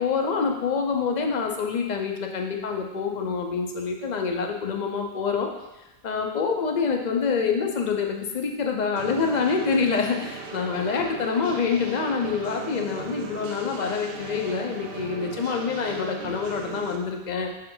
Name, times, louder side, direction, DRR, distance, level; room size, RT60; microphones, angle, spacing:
voice 1, 0.0-5.5 6.0-17.5, left 5 dB, 45° left, 3 dB, 0.7 m, -26 dB
sound 1, 9.0-17.0, right 5 dB, 65° right, 0.8 m, -38 dB
6.3 x 4.4 x 3.8 m, 1.0 s
omnidirectional pair, 1.1 m